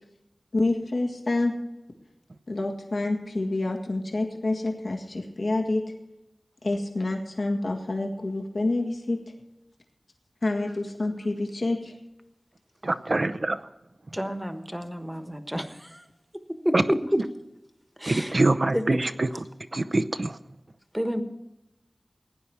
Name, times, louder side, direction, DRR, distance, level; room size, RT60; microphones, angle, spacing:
voice 1, 0.5-1.6 2.5-5.8 6.6-9.2 10.4-11.9, left 2 dB, 75° left, 2 dB, 1.8 m, -27 dB
voice 2, 12.8-13.6 16.7-16.8 18.1-19.4 19.7-20.4, right 2 dB, 55° right, 10 dB, 0.7 m, -24 dB
voice 3, 14.1-16.0 16.6-17.0 18.0-18.4 18.7-19.1 20.9-21.2, equal, 5° right, 8 dB, 1.2 m, -30 dB
17.0 x 10.0 x 4.7 m, 0.93 s
wide cardioid pair, 70°, 0 cm